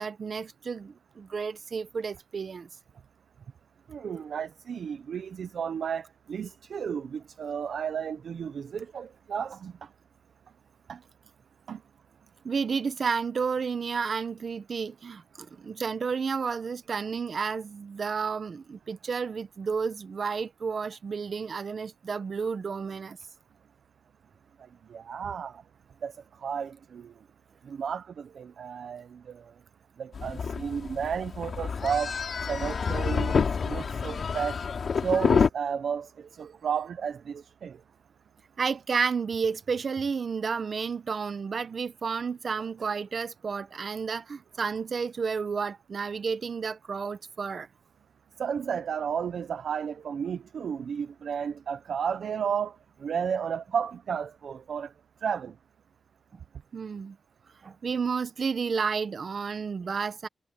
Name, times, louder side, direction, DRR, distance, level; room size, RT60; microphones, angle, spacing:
voice 1, 0.0-2.7 12.4-15.2 15.6-23.2 38.6-47.7 56.7-57.2 57.6-60.3, right 5 dB, 45° right, 1.0 m, -31 dB
voice 2, 3.9-9.7 10.9-11.0 11.7-11.8 24.9-25.6 26.0-26.1 26.4-27.1 27.7-29.4 30.0-32.1 32.5-34.6 35.0-36.1 36.4-37.8 48.4-52.8 53.0-54.9 55.2-55.5, right 7 dB, 70° right, 0.8 m, -32 dB
sound 1, 30.1-35.5, left 5 dB, 55° left, 2.8 m, -28 dB
wide cardioid pair, 155°, 0 cm